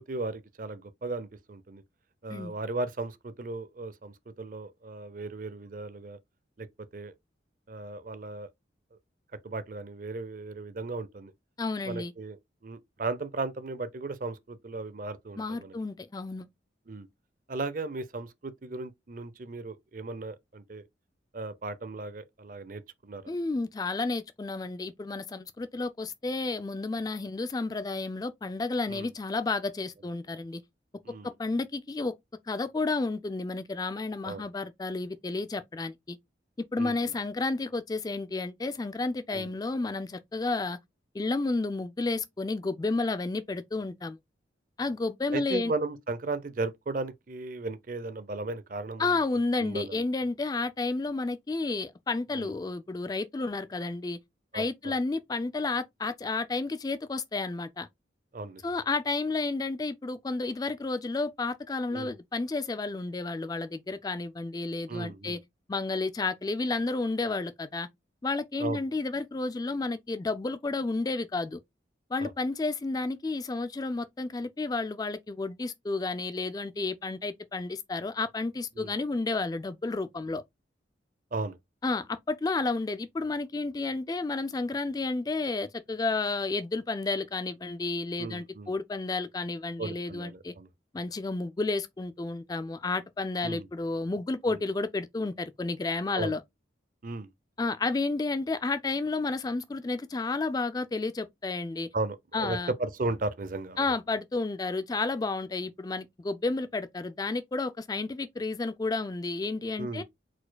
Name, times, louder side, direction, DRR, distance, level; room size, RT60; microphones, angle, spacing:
voice 1, 0.1-1.8 2.2-6.2 6.6-7.1 7.7-8.5 9.4-11.3 11.8-15.7 16.9-17.1 17.5-20.8 21.3-23.2 28.9-29.1 31.0-31.3 34.2-34.5 36.8-37.1 39.3-39.5 45.3-49.2 49.6-50.0 52.3-52.5 54.5-54.9 58.3-58.6 61.9-62.1 64.9-65.4 68.6-68.8 72.2-72.3 78.8-78.9 81.3-81.6 88.2-88.7 89.8-90.7 93.4-93.7 96.1-96.3 97.0-97.3 101.9-103.9 109.8-110.0, right 3 dB, 45° right, 0.5 m, -36 dB
voice 2, 11.6-12.1 15.4-16.5 23.3-30.6 31.4-32.1 32.5-36.2 36.7-40.8 41.1-44.2 44.8-45.7 49.0-54.2 54.5-57.9 58.6-65.4 65.7-67.9 68.2-71.6 72.1-80.4 81.8-90.5 90.9-96.4 97.6-101.9 102.3-102.7 103.8-110.0, left 3 dB, 20° left, 0.3 m, -31 dB
4.5 x 4.2 x 2.2 m
head